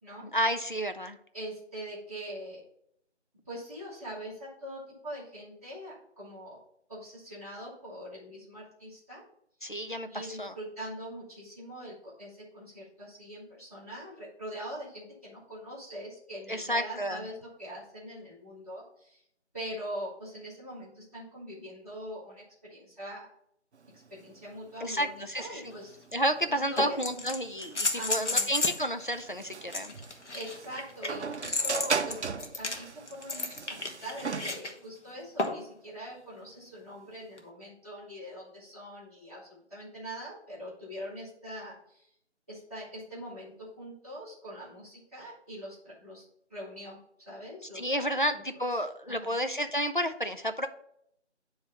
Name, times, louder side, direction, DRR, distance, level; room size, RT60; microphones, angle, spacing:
voice 1, 0.3-1.2 9.6-10.5 16.5-17.2 24.8-25.6 26.1-29.9 47.7-50.7, equal, 45° left, 8 dB, 0.5 m, -31 dB
voice 2, 1.3-2.6 3.4-6.6 6.9-9.2 10.1-19.2 19.5-23.2 23.9-26.2 26.5-27.2 27.9-28.5 30.3-42.1 42.5-46.2 46.5-47.0 47.2-48.0 48.3-48.4 48.7-49.3, equal, 15° left, -11 dB, 1.5 m, -43 dB
sound 1, 23.7-34.6, right 5 dB, 70° right, 0.6 m, -38 dB
sound 2, 25.7-25.8 26.8-28.9 29.7-34.7 35.4-35.7 37.4-37.5, left 2 dB, 75° left, 1.3 m, -32 dB
9.0 x 3.2 x 5.5 m, 0.70 s
figure-of-eight pair, 180°, 35 cm